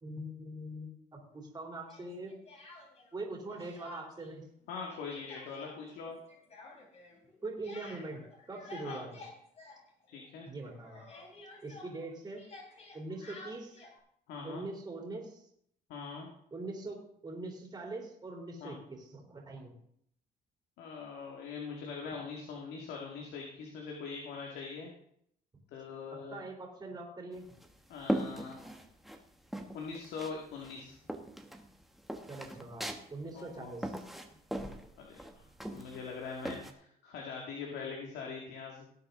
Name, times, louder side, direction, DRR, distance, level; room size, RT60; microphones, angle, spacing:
voice 1, 0.0-2.4 3.1-4.4 7.4-8.2 8.5-9.2 10.4-11.0 11.6-12.4 12.9-13.8 14.4-15.4 16.5-19.8 26.3-27.4 32.3-34.0, right 2 dB, 25° right, 0 dB, 3.4 m, -42 dB
Speech, 1.9-3.2 3.5-4.4 4.6-10.3 10.6-14.0, left 3 dB, 40° left, 3.7 m, -52 dB
voice 2, 4.7-6.2 8.8-9.0 10.1-10.5 14.3-14.7 15.9-16.3 18.6-18.7 20.8-24.9 25.7-26.4 27.9-28.6 29.7-31.0 33.3-33.7 35.0-35.4 35.7-38.9, left 5 dB, 80° left, 0 dB, 2.2 m, -42 dB
sound 1, 27.3-29.2 29.5-30.4 30.6-36.7, right 1 dB, ahead, 1.4 m, -39 dB
18.0 x 7.9 x 3.8 m, 0.69 s
cardioid pair, 110°, 17 cm